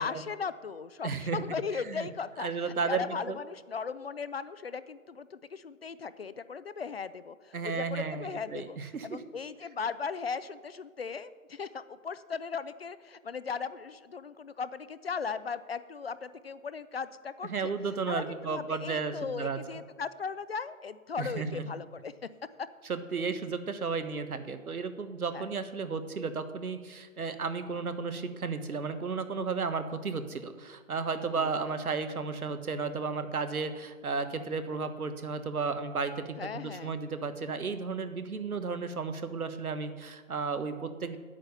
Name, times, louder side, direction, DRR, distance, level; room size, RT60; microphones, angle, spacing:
voice 1, 0.0-8.8 9.0-17.7 18.1-22.1 25.3-25.5 27.2-27.3 31.4-31.5 36.4-36.9, left 5 dB, 45° left, 15 dB, 0.5 m, -37 dB
voice 2, 1.0-1.4 1.8-2.1 2.4-3.4 7.5-9.2 17.5-19.6 21.2-21.7 22.9-41.2, right 4 dB, 85° right, 9 dB, 1.4 m, -33 dB
9.1 x 8.9 x 6.8 m, 1.5 s
hypercardioid pair, 155°, 43 cm